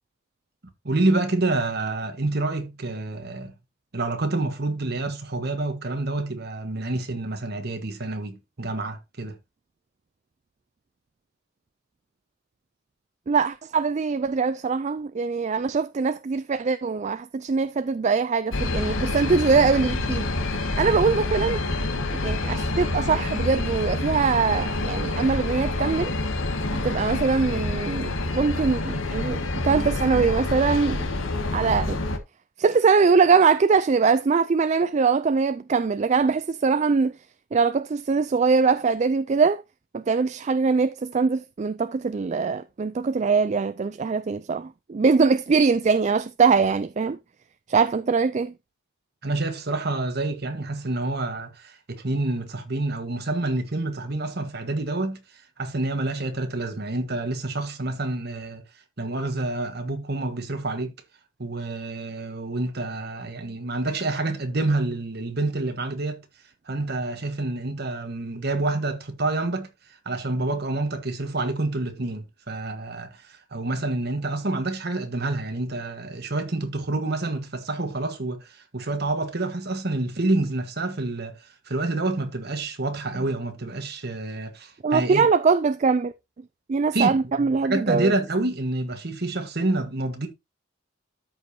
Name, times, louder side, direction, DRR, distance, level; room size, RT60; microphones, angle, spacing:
voice 1, 0.8-3.5 3.9-9.4 49.2-55.2 55.6-58.6 59.0-60.9 61.4-66.2 66.7-85.3 86.9-90.3, right 2 dB, 50° right, 1.5 m, -28 dB
voice 2, 13.3-20.3 20.8-21.6 22.2-26.1 26.8-31.1 31.5-32.0 32.6-37.2 37.5-39.6 39.9-47.2 47.7-48.5 84.8-86.1 86.7-88.1, right 5 dB, 35° right, 0.3 m, -22 dB
sound 1, 18.5-32.2, left 2 dB, 80° left, 1.3 m, -27 dB
13.0 x 5.3 x 2.8 m
head